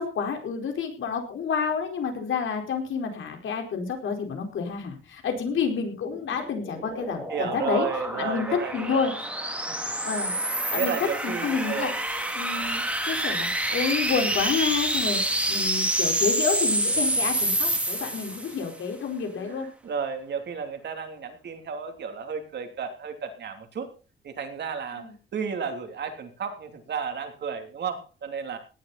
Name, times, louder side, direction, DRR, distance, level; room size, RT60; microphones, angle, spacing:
voice 1, 0.0-7.9 8.2-9.1 10.0-10.4 10.7-11.0 11.2-11.9 12.3-15.2 15.5-19.7 25.0-25.1, left 6 dB, 70° left, 4 dB, 4.6 m, -29 dB
sound 1, 6.1-18.7, right 1 dB, 5° right, 2.6 m, -28 dB
voice 2, 7.3-9.2 10.3-11.9 19.3-23.9 24.2-28.6, right 6 dB, 55° right, 6 dB, 3.1 m, -33 dB
18.0 x 12.0 x 4.2 m, 0.35 s
wide cardioid pair, 170°, 21 cm